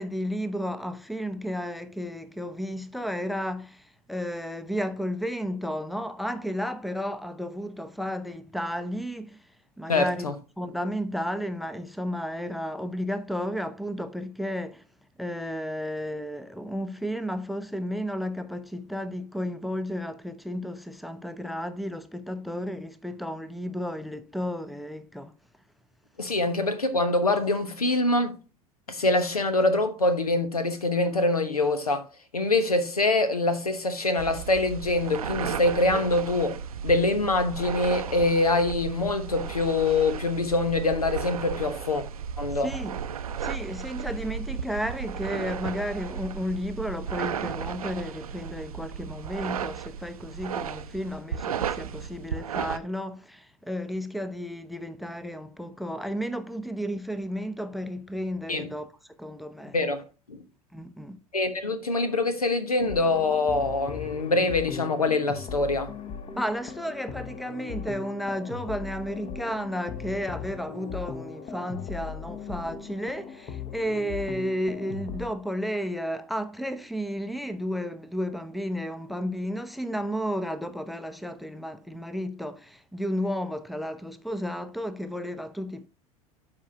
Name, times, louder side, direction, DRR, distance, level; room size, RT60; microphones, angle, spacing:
voice 1, 0.0-9.4 9.8-10.3 10.6-14.9 15.2-25.3 42.5-43.0 43.4-58.9 59.2-59.8 60.7-61.2 66.3-85.9, equal, ahead, 0.6 m, -33 dB
voice 2, 9.9-10.3 26.2-28.4 28.9-32.0 32.3-42.0 42.4-42.7 58.5-58.7 59.7-60.4 61.3-65.9, left 2 dB, 80° left, 1.1 m, -24 dB
sound 1, 34.2-52.8, right 7 dB, 75° right, 0.6 m, -34 dB
sound 2, 62.8-75.3, left 6 dB, 30° left, 1.1 m, -39 dB
12.0 x 4.9 x 2.8 m
figure-of-eight pair, 75°, 19 cm